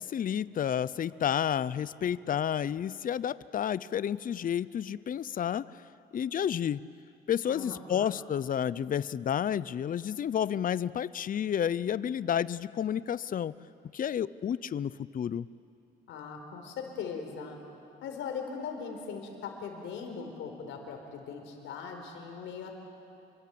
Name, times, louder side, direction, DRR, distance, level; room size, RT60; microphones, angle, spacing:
voice 1, 0.0-5.8 6.1-6.8 7.3-13.5 13.9-15.5, left 9 dB, 45° left, 18 dB, 0.6 m, -31 dB
voice 2, 7.5-8.2 16.1-17.6 18.0-22.8, left 6 dB, 85° left, 4 dB, 4.5 m, -40 dB
28.5 x 24.0 x 8.6 m, 2.7 s
cardioid pair, 90°, 20 cm